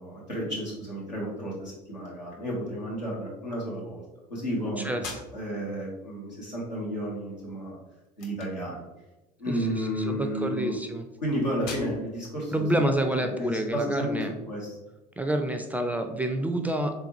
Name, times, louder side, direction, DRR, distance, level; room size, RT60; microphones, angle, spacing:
voice 1, 0.0-4.0 4.3-4.9 5.3-7.8 8.2-8.8 9.4-10.7 11.2-14.7, equal, 90° left, -6 dB, 1.3 m, -32 dB
voice 2, 4.8-5.2 9.5-11.1 12.5-14.3 15.2-16.9, right 1 dB, 5° right, 6 dB, 0.3 m, -28 dB
sound 1, 5.0-13.9, left 4 dB, 55° left, 0.8 m, -48 dB
3.9 x 3.5 x 2.9 m, 1.0 s
figure-of-eight pair, 65°, 21 cm